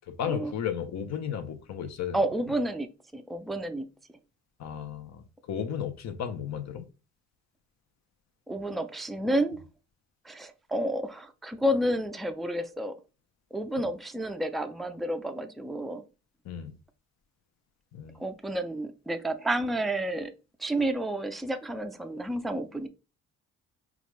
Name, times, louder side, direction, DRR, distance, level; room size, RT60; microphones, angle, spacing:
voice 1, 0.1-2.2 4.6-6.9 13.8-13.9 16.4-16.8 17.9-18.2, left 8 dB, 60° left, 0.8 m, -34 dB
voice 2, 2.1-3.9 8.5-9.6 10.2-13.0 13.5-16.0 18.2-20.3 20.6-22.9, right 1 dB, ahead, 0.4 m, -30 dB
4.8 x 2.5 x 3.2 m
cardioid pair, 90°, 30 cm